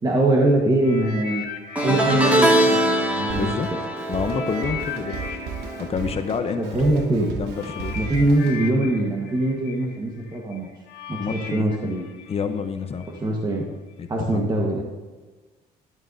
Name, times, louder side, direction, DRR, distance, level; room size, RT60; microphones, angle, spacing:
voice 1, 0.0-1.5 1.8-3.5 6.6-7.3 7.9-10.7 11.1-12.0 13.2-13.6 14.1-14.8, right 1 dB, 25° right, -1 dB, 1.4 m, -22 dB
sound 1, 0.8-3.7 4.2-13.2 13.9-14.0, left 6 dB, 75° left, 1.5 m, -38 dB
sound 2, 1.8-7.2 7.4-7.8 9.0-9.1, right 1 dB, 10° right, 2.0 m, -23 dB
Drum kit, 3.3-8.7, right 5 dB, 85° right, 1.1 m, -36 dB
voice 2, 3.4-3.7 4.1-5.3 5.8-6.6 7.2-8.0 11.2-11.7 12.3-13.1 14.0-14.4, left 6 dB, 35° left, 8 dB, 0.8 m, -28 dB
12.5 x 12.0 x 2.7 m, 1.3 s
cardioid pair, 110°, 17 cm